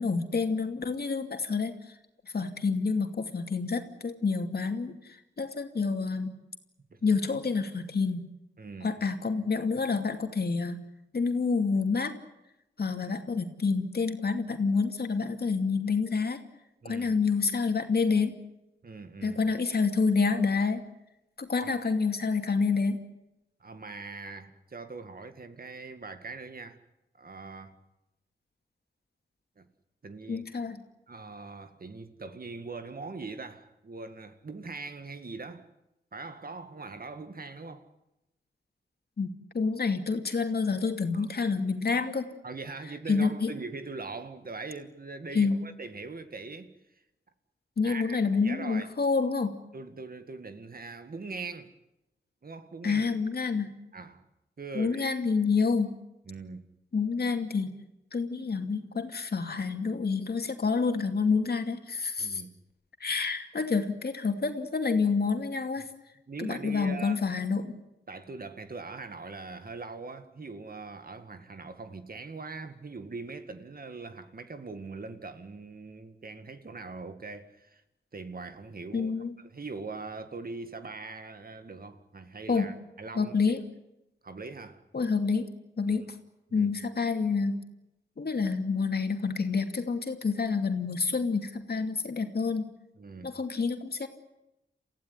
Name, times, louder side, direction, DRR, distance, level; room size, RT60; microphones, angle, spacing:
voice 1, 0.0-1.7 2.3-5.0 5.4-6.3 7.0-8.3 8.8-10.8 11.1-12.2 12.8-16.4 16.8-18.3 19.2-20.8 21.4-23.0 30.3-30.8 39.2-42.3 43.1-43.5 45.3-45.6 47.8-49.5 52.8-53.7 54.7-55.9 56.9-57.7 58.1-62.4 63.0-65.9 66.4-67.7 78.9-79.3 82.5-82.7 83.1-83.6 84.9-85.5 85.8-86.1 86.5-87.6 88.2-92.7 93.2-94.1, left 4 dB, 60° left, 2.6 m, -28 dB
voice 2, 8.6-8.9 16.8-17.2 18.8-19.4 21.6-21.7 23.6-26.8 27.1-27.7 29.6-29.7 30.0-30.5 31.1-35.7 36.1-37.9 41.1-41.3 42.4-46.7 47.8-48.9 49.7-51.7 52.4-53.0 53.9-54.2 54.6-55.1 56.3-56.6 62.2-62.6 65.8-65.9 66.3-67.2 68.1-77.8 78.1-83.6 84.2-84.8 86.5-86.7 93.0-93.3, right 3 dB, 50° right, 2.0 m, -41 dB
28.5 x 15.5 x 9.7 m
wide cardioid pair, 70°, 19 cm